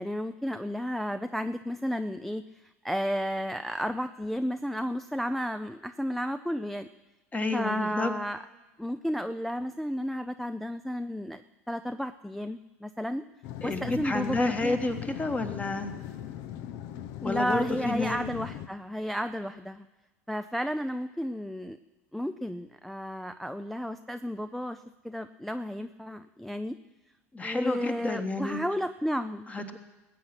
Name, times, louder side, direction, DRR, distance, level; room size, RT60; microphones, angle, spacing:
voice 1, 0.0-6.9 7.5-8.4 8.8-11.4 11.7-13.2 13.6-14.7 17.2-19.9 20.3-21.8 22.1-26.8 27.4-29.8, equal, ahead, 9 dB, 0.4 m, -32 dB
voice 2, 7.3-8.1 13.6-15.9 17.2-18.2 27.3-28.6 29.5-29.8, left 2 dB, 20° left, 7 dB, 1.5 m, -30 dB
sound 1, 13.4-18.7, left 11 dB, 55° left, 0.8 m, -40 dB
20.0 x 8.6 x 5.9 m, 1.1 s
figure-of-eight pair, 75°, 8 cm